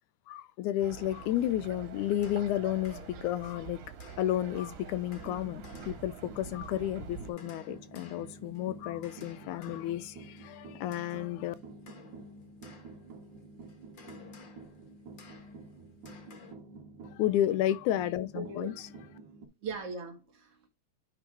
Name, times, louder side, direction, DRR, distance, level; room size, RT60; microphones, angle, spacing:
voice 1, 0.3-3.8 4.2-11.6 17.1-18.7, left 12 dB, 80° left, 2.0 m, -32 dB
sound 1, 0.8-7.3, right 7 dB, 85° right, 2.9 m, -46 dB
sound 2, 2.0-16.5, left 5 dB, 50° left, 1.6 m, -56 dB
sound 3, 5.1-19.5, right 3 dB, 70° right, 3.0 m, -49 dB
voice 2, 18.3-18.7 19.6-20.7, right 4 dB, 50° right, 2.4 m, -39 dB
10.0 x 3.6 x 4.6 m
omnidirectional pair, 3.6 m